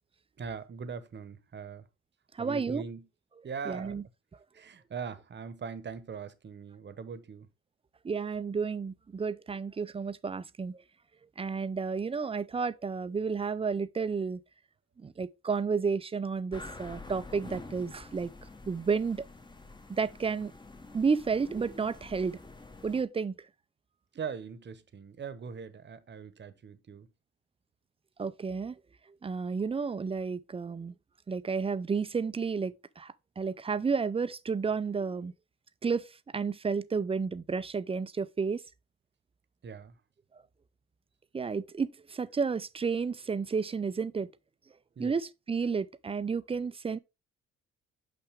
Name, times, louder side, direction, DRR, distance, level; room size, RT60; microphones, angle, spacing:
voice 1, 0.4-1.8 2.4-3.1 3.4-4.0 4.5-7.5 24.1-27.1 39.6-39.9 45.0-45.1, right 6 dB, 35° right, 0.9 m, -41 dB
voice 2, 2.4-2.8 3.7-4.0 8.0-10.8 11.4-14.4 15.0-18.3 18.7-19.3 19.9-20.5 20.9-22.4 22.8-23.3 28.2-28.8 29.2-30.9 31.3-35.3 35.8-36.1 36.3-38.6 41.3-44.3 45.0-47.0, right 5 dB, 20° right, 0.4 m, -31 dB
sound 1, 16.5-23.0, left 3 dB, 15° left, 0.9 m, -48 dB
5.8 x 5.7 x 3.4 m
cardioid pair, 90°, 30 cm